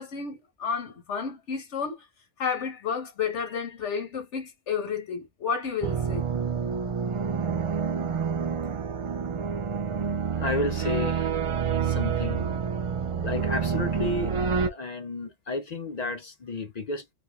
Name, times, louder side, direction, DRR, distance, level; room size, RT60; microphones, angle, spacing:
voice 1, 0.0-2.1 2.4-6.3, left 6 dB, 90° left, 1.3 m, -31 dB
sound 1, 5.8-14.7, right 6 dB, 50° right, 0.4 m, -28 dB
voice 2, 10.3-11.5 11.8-12.5 13.2-17.1, left 3 dB, 50° left, 0.5 m, -32 dB
3.8 x 3.4 x 2.3 m
omnidirectional pair, 1.2 m